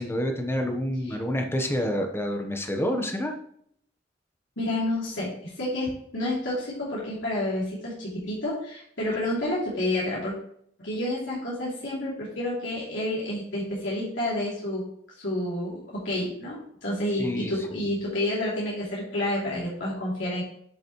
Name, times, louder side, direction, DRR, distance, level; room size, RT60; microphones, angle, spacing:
voice 1, 0.0-3.4 17.1-17.5, equal, 15° left, 4 dB, 1.1 m, -28 dB
voice 2, 4.6-10.3 10.8-14.8 15.2-20.4, left 1 dB, 80° left, -7 dB, 3.1 m, -29 dB
10.5 x 6.1 x 3.1 m, 0.68 s
head